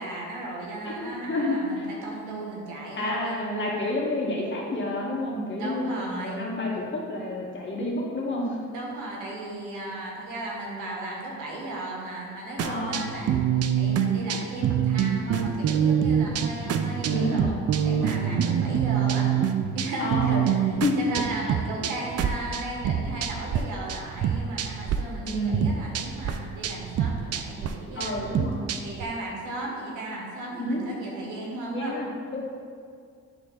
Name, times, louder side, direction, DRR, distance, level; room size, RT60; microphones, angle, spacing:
voice 1, 0.0-3.4 5.6-6.4 8.7-13.4 13.8-19.3 19.7-28.1 28.8-31.9, right 2 dB, 90° right, -2 dB, 1.8 m, -36 dB
voice 2, 0.8-1.9 3.0-8.6 12.6-13.0 17.1-17.6 20.0-20.5 20.8-21.0 25.2-25.7 28.0-28.7 30.6-30.9 31.7-32.4, left 1 dB, 40° left, -3 dB, 1.9 m, -29 dB
sound 1, 12.6-23.6 23.9-25.0 25.3-29.0, right 8 dB, 55° right, 0.6 m, -26 dB
11.0 x 3.7 x 4.1 m, 2.3 s
cardioid pair, 90°, 30 cm